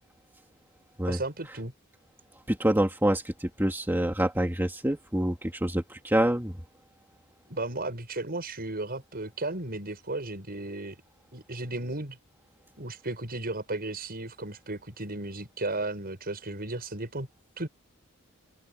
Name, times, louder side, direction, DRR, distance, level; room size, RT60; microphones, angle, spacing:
voice 1, 1.1-1.7 7.5-10.9 11.3-12.2 12.8-17.3 17.6-17.7, right 2 dB, 45° right, 6.2 m, -34 dB
voice 2, 2.5-6.5, right 1 dB, 10° right, 2.1 m, -26 dB
open air
head